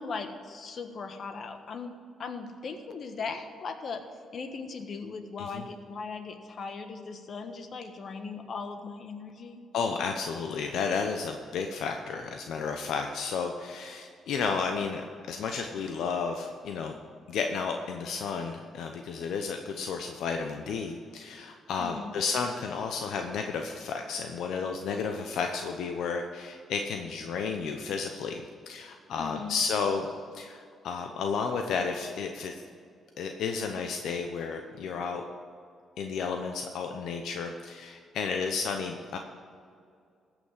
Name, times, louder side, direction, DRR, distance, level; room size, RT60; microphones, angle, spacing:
voice 1, 0.0-4.0 4.3-9.6 21.8-22.1 29.2-29.6, left 4 dB, 55° left, 7 dB, 1.3 m, -38 dB
voice 2, 9.7-15.0 15.3-17.0 17.3-30.1 30.3-32.6 33.2-35.2 36.0-39.2, left 5 dB, 75° left, 4 dB, 0.8 m, -32 dB
14.5 x 6.1 x 7.5 m, 2.3 s
cardioid pair, 90°, 0 cm